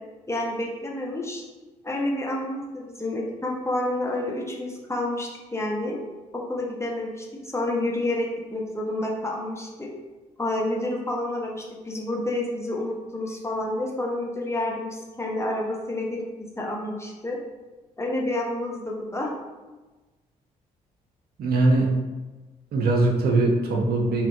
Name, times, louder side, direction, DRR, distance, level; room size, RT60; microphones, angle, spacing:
voice 1, 0.3-1.4 1.8-6.0 6.3-9.9 10.4-16.2 16.6-17.4 18.0-19.3, left 1 dB, 15° left, -2 dB, 0.6 m, -29 dB
voice 2, 21.4-21.9 22.7-24.3, right 2 dB, 55° right, 0 dB, 0.6 m, -21 dB
2.8 x 2.5 x 2.4 m, 1.2 s
hypercardioid pair, 45°, 18 cm